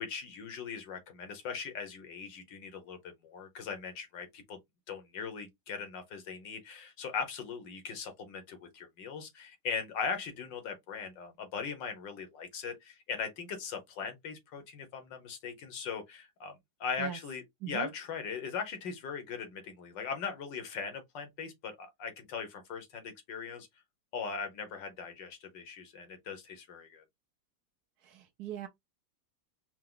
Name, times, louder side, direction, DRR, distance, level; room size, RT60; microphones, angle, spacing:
voice 1, 0.0-4.6 4.9-16.5 16.8-23.7 24.1-27.0, left 5 dB, 80° left, 1.7 m, -39 dB
voice 2, 28.0-28.7, right 10 dB, 65° right, 1.1 m, -40 dB
4.6 x 2.0 x 3.7 m
omnidirectional pair, 1.9 m